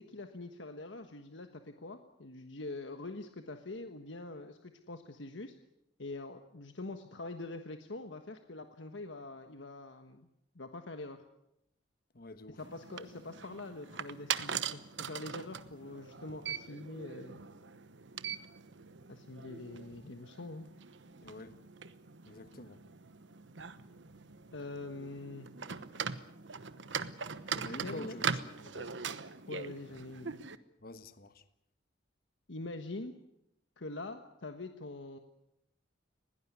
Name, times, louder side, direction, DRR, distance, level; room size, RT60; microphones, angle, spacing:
voice 1, 0.0-5.5 6.0-10.3 10.5-11.2 12.6-17.4 19.1-20.7 24.5-25.5 27.8-28.2 29.5-30.4 32.5-33.1 33.8-35.2, left 2 dB, 85° left, 1.4 m, -44 dB
voice 2, 12.1-12.6 21.2-21.6 22.3-22.8 27.5-28.9 30.8-31.4, left 1 dB, 55° left, 1.5 m, -47 dB
sound 1, 12.6-30.6, right 6 dB, 75° right, 1.1 m, -41 dB
21.0 x 17.5 x 9.6 m
head